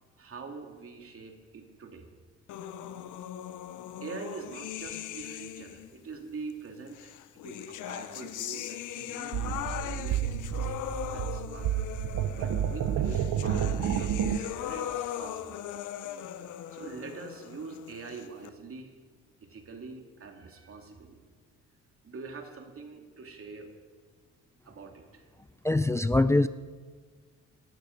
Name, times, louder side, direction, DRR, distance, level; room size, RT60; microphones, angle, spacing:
voice 1, 0.2-2.1 4.0-10.2 10.6-11.7 12.3-15.6 16.7-18.9 19.4-21.2 22.0-23.7 24.6-25.3, right 4 dB, 45° right, 3 dB, 2.6 m, -44 dB
sound 1, 2.5-5.9 6.9-18.5, left 11 dB, 80° left, 0.8 m, -39 dB
sound 2, 9.3-14.4, right 9 dB, 75° right, 1.0 m, -30 dB
voice 2, 25.6-26.5, left 2 dB, 10° left, 13 dB, 0.4 m, -23 dB
18.5 x 12.5 x 5.3 m, 1.5 s
cardioid pair, 90°, 30 cm